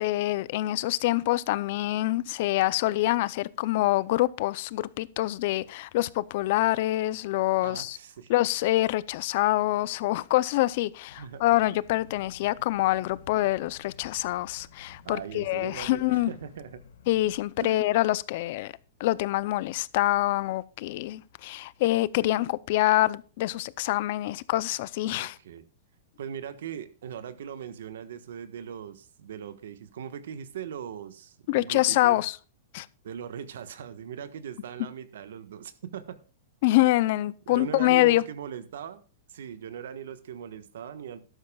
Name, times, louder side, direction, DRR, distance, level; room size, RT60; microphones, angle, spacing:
voice 1, 0.0-8.0 8.3-16.3 17.1-18.7 19.0-25.4 31.5-32.4 32.7-32.9 36.6-38.2, left 17 dB, 55° left, 0.5 m, -25 dB
voice 2, 7.6-8.4 11.1-11.4 12.6-12.9 15.0-16.8 17.6-17.8 25.1-25.6 26.2-32.2 33.0-36.2 37.5-39.0 39.3-41.2, right 8 dB, 75° right, 1.3 m, -40 dB
sound 1, 11.1-17.4, left 5 dB, 80° left, 2.0 m, -53 dB
13.0 x 12.0 x 2.3 m
hypercardioid pair, 145°, 0 cm